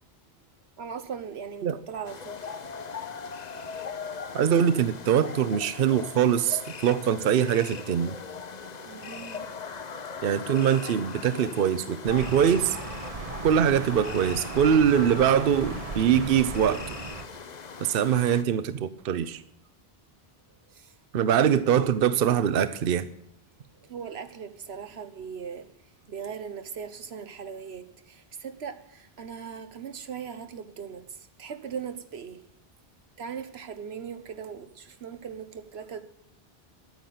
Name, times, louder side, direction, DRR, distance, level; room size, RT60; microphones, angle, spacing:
voice 1, 0.8-2.6 8.8-9.5 20.7-21.0 23.8-25.7 26.1-32.4 33.2-36.0, right 7 dB, 90° right, 1.3 m, -39 dB
sound 1, 2.0-18.4, left 6 dB, 45° left, 0.9 m, -40 dB
voice 2, 4.3-8.2 10.2-12.8 13.4-16.8 17.8-19.4 21.1-23.1, right 8 dB, 65° right, 0.9 m, -23 dB
sound 2, 12.0-17.2, right 4 dB, 40° right, 1.0 m, -37 dB
12.0 x 9.4 x 9.3 m
omnidirectional pair, 1.0 m